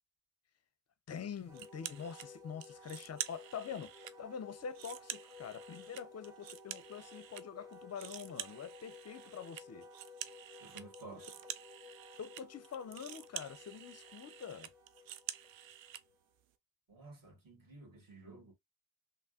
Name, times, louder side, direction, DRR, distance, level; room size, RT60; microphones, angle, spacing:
voice 1, 1.1-9.9 12.2-14.7, left 7 dB, 35° left, 0.5 m, -45 dB
Wind instrument woodwind instrument, 1.5-16.2, left 3 dB, 10° right, 0.8 m, -55 dB
sound 1, 1.5-2.3 2.6-4.1 4.5-7.4 7.7-16.0, right 11 dB, 70° right, 0.5 m, -48 dB
voice 2, 10.6-11.3 16.9-18.5, right 3 dB, 45° right, 1.8 m, -53 dB
3.3 x 2.1 x 2.4 m
supercardioid pair, 50°, 48 cm